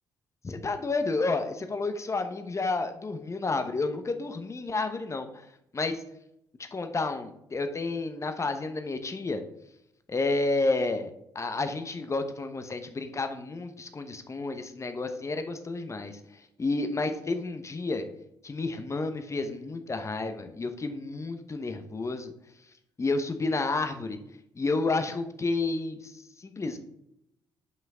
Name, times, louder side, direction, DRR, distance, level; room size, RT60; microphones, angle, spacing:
voice 1, 0.4-5.4 5.7-6.0 6.7-9.4 10.1-16.2 16.6-18.1 18.4-22.3 23.0-24.2 24.6-26.8, left 3 dB, 25° left, 8 dB, 1.0 m, -30 dB
8.1 x 5.7 x 3.6 m, 0.80 s
figure-of-eight pair, 45°, 11 cm